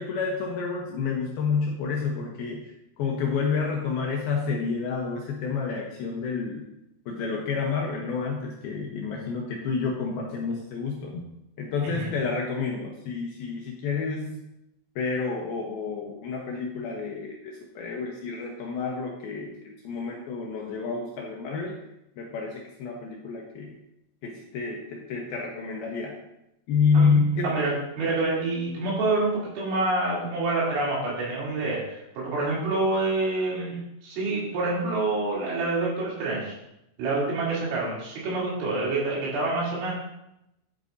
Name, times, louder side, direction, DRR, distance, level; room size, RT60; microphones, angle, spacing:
voice 1, 0.0-6.7 7.1-11.2 11.6-14.4 15.0-21.7 22.2-23.7 24.2-26.2 26.7-27.6, left 5 dB, 75° left, -1 dB, 2.4 m, -29 dB
voice 2, 27.4-36.6 37.0-39.9, right 2 dB, 80° right, -6 dB, 5.6 m, -27 dB
11.0 x 8.8 x 2.7 m, 0.86 s
omnidirectional pair, 5.3 m